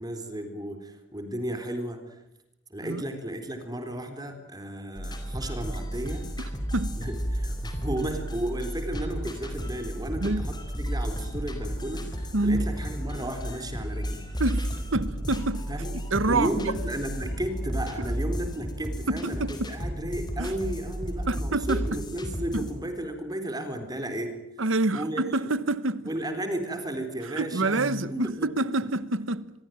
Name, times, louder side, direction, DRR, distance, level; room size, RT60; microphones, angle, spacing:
voice 1, 0.0-2.2 2.7-6.3 6.9-14.3 15.7-16.0 16.3-24.6 24.9-25.2 26.1-28.5, right 1 dB, 20° right, 3.9 m, -34 dB
sound 1, 5.0-22.8, equal, 20° left, 4.6 m, -33 dB
voice 2, 6.4-7.0 10.2-10.5 12.3-12.7 14.4-15.7 16.1-16.7 19.1-19.7 20.4-20.5 21.3-21.8 22.5-22.7 24.6-26.1 27.4-29.5, right 2 dB, 90° right, 1.3 m, -27 dB
26.5 x 22.5 x 9.3 m
head